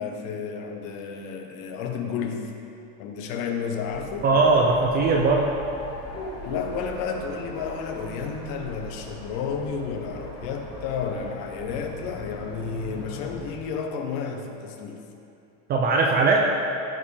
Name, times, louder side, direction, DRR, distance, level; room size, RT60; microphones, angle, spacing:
voice 1, 0.0-2.5 3.0-4.3 6.4-15.0, left 6 dB, 55° left, 3 dB, 1.1 m, -31 dB
sound 1, 3.8-13.6, left 1 dB, 25° left, 1.5 m, -40 dB
voice 2, 4.2-5.5 15.7-16.5, right 3 dB, 25° right, 0 dB, 0.4 m, -20 dB
15.0 x 5.3 x 3.3 m, 2.7 s
supercardioid pair, 150°, 44 cm